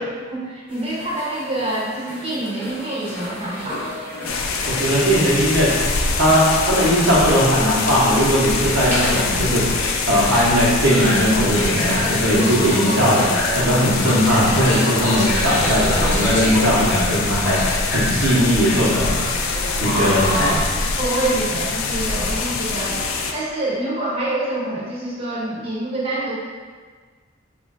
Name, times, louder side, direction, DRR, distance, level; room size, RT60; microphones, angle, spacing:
voice 1, 0.3-3.9 12.4-12.5 19.9-20.6 21.0-23.0 23.3-26.4, right 1 dB, 30° right, -7 dB, 0.7 m, -26 dB
sound 1, 0.7-20.5, equal, 10° left, 0.8 m, -28 dB
sound 2, 4.2-23.3, left 4 dB, 85° left, 0.4 m, -24 dB
voice 2, 4.7-5.7 6.1-9.7 10.1-13.3 13.5-19.1 19.8-20.4, equal, 75° right, -7 dB, 0.9 m, -18 dB
3.1 x 2.5 x 3.8 m, 1.5 s
head